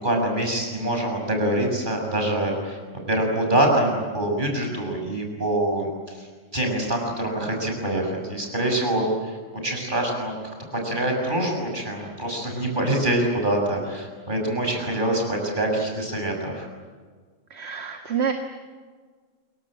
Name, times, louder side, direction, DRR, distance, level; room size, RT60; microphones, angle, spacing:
voice 1, 0.0-2.8 3.1-9.4 9.6-10.3 10.8-16.7, right 1 dB, 40° right, 2 dB, 6.9 m, -25 dB
voice 2, 17.5-18.3, right 7 dB, 55° right, 4 dB, 2.0 m, -27 dB
28.0 x 23.5 x 8.9 m, 1.5 s
omnidirectional pair, 1.3 m